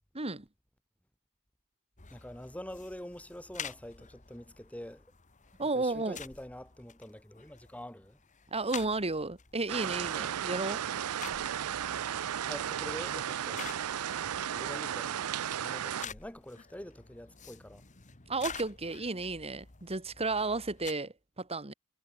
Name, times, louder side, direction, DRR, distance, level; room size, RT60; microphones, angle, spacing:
voice 1, 0.1-0.5 5.6-6.2 8.5-10.8 18.3-21.7, right 3 dB, 25° right, 2.0 m, -33 dB
sound 1, 2.0-20.9, left 7 dB, 35° left, 1.7 m, -49 dB
voice 2, 2.1-5.1 5.7-8.2 12.5-13.7 14.5-15.2 15.6-17.8, left 1 dB, 5° left, 3.3 m, -45 dB
sound 2, 9.7-16.1, right 9 dB, 85° right, 0.5 m, -34 dB
head